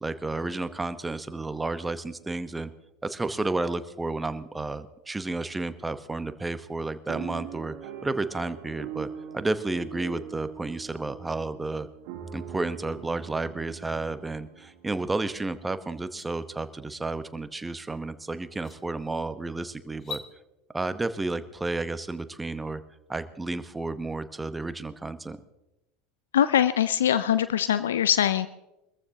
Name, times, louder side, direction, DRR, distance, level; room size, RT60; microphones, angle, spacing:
voice 1, 0.0-2.7 3.0-11.9 12.3-20.2 20.7-22.8 23.1-25.4, right 2 dB, 15° right, 12 dB, 1.0 m, -32 dB
sound 1, 7.1-15.2 15.8-15.9 16.1-16.4, right 8 dB, 65° right, 1.8 m, -42 dB
sound 2, 15.9-16.3 17.9-18.0 18.5-18.8 19.9-20.3, left 4 dB, 35° left, 1.9 m, -41 dB
voice 2, 26.3-28.5, left 10 dB, 80° left, 14 dB, 0.4 m, -22 dB
23.5 x 14.0 x 2.8 m, 0.96 s
hypercardioid pair, 80°, 0 cm